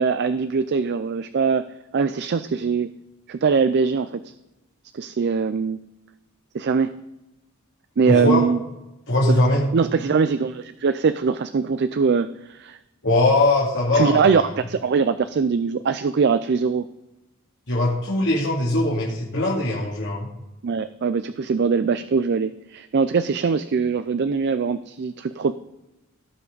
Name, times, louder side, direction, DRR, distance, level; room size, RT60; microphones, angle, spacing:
voice 1, 0.0-1.7 1.9-2.9 3.3-4.3 4.9-5.8 6.5-6.9 8.0-8.6 9.3-9.4 9.7-12.8 13.9-16.9 20.6-25.6, right 5 dB, 55° right, 12 dB, 0.4 m, -22 dB
voice 2, 8.1-8.4 9.1-9.6 13.0-14.5 17.7-20.3, left 2 dB, 60° left, -5 dB, 2.4 m, -21 dB
17.0 x 5.7 x 3.9 m, 0.96 s
head